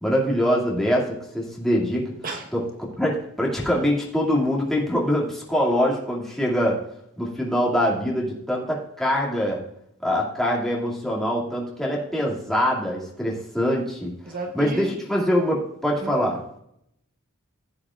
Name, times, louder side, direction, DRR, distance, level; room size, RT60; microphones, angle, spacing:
voice 1, 0.0-2.1 2.5-6.8 7.2-9.6 10.0-14.1 14.5-16.6, equal, ahead, -4 dB, 2.4 m, -24 dB
voice 2, 14.3-14.9 16.0-16.2, right 2 dB, 40° right, 3 dB, 1.1 m, -32 dB
15.0 x 8.7 x 2.5 m, 0.75 s
head